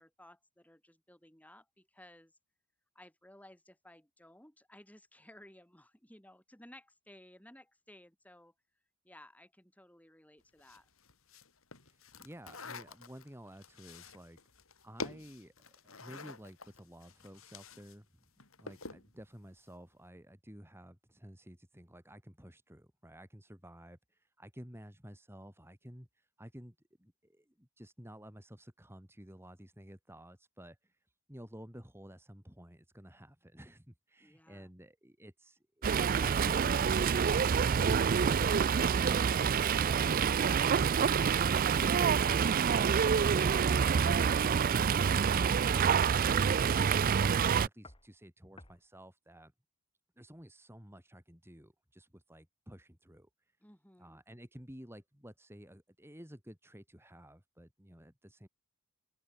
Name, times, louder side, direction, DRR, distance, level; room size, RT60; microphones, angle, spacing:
voice 1, 0.0-2.3 2.9-8.5 9.0-10.9 34.2-34.7 53.6-54.2, left 1 dB, 5° left, 5.6 m, -58 dB
sound 1, 10.6-17.9 18.2-19.1, left 3 dB, 65° left, 5.0 m, -47 dB
voice 2, 11.9-14.4 14.8-18.1 18.6-30.9 31.3-49.5 50.2-53.3 54.0-58.5, equal, 10° right, 4.7 m, -53 dB
Fowl, 35.8-47.7, right 6 dB, 40° right, 0.4 m, -27 dB
sound 2, 47.8-48.1 48.6-48.8, left 2 dB, 25° left, 7.7 m, -54 dB
open air
head